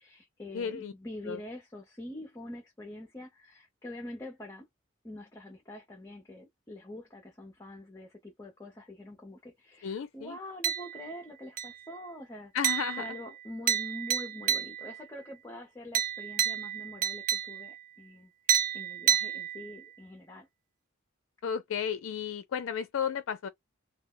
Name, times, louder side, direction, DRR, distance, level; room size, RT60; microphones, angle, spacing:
voice 1, 0.0-4.7 5.0-12.5 13.0-20.5, left 1 dB, 15° left, 0.5 m, -45 dB
voice 2, 0.5-0.9 1.3-1.4 9.8-10.4 12.5-13.0 21.4-23.5, left 7 dB, 75° left, 0.4 m, -33 dB
sound 1, 10.6-11.2 11.6-12.0 12.6-15.1 15.9-17.9 18.5-19.9, right 9 dB, 40° right, 0.4 m, -31 dB
2.3 x 2.1 x 3.6 m
head